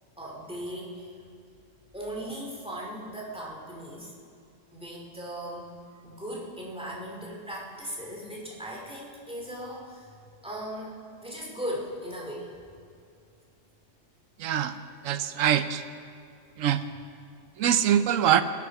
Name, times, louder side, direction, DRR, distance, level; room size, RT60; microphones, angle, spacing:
voice 1, 0.2-1.1 1.9-4.1 4.7-5.7 6.0-10.2 10.4-12.5, equal, 5° right, -3 dB, 2.6 m, -38 dB
voice 2, 14.4-14.8 15.0-15.8 16.6-16.8 17.6-18.4, right 10 dB, 90° right, 11 dB, 1.1 m, -23 dB
21.5 x 8.5 x 6.0 m, 2.4 s
omnidirectional pair, 1.3 m